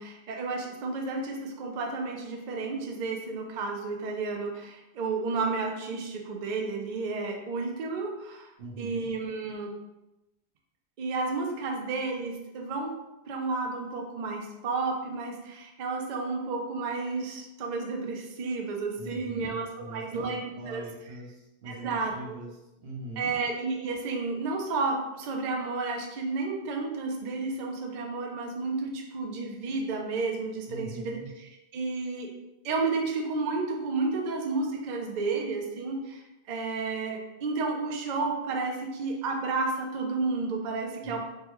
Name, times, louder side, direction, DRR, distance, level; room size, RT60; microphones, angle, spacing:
voice 1, 0.0-9.8 11.0-13.0 13.3-20.8 21.7-22.1 23.2-31.2 31.7-32.3 32.6-41.2, right 3 dB, 55° right, 1 dB, 0.5 m, -32 dB
voice 2, 8.6-9.1 19.0-23.3 30.7-31.3 41.0-41.2, right 2 dB, 85° right, -4 dB, 1.1 m, -42 dB
3.3 x 2.2 x 2.9 m, 0.95 s
omnidirectional pair, 1.1 m